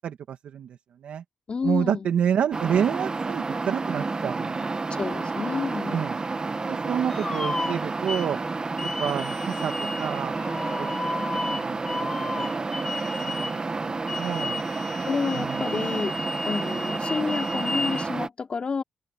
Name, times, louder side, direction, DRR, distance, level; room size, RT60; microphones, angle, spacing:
voice 1, 0.0-1.2 1.6-4.7 5.9-6.2 6.7-8.4 8.8-11.2 11.5-12.7 13.0-14.6 15.3-15.9, right 8 dB, 75° right, 2.1 m, -29 dB
voice 2, 1.5-2.1 5.0-6.1 15.0-16.1 16.4-18.8, left 5 dB, 50° left, 3.0 m, -29 dB
sound 1, 2.5-18.3, right 3 dB, 35° right, 1.5 m, -30 dB
sound 2, 7.1-8.3 8.8-13.6 14.1-18.1, left 2 dB, 25° left, 3.0 m, -33 dB
open air
cardioid pair, 70°, 2 cm